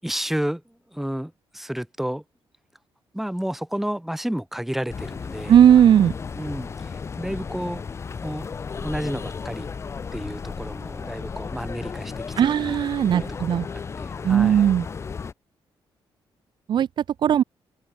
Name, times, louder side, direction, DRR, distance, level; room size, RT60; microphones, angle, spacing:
voice 1, 0.0-2.2 3.1-5.6 6.3-7.8 8.2-8.5 8.8-9.7 10.1-12.8 13.2-14.7, equal, 5° right, 5.6 m, -31 dB
sound 1, 4.9-15.3, left 5 dB, 30° left, 1.1 m, -34 dB
voice 2, 5.5-6.1 12.4-13.7 14.2-14.9 16.7-16.9 17.2-17.4, right 9 dB, 55° right, 0.9 m, -17 dB
wide cardioid pair, 180°, 9 cm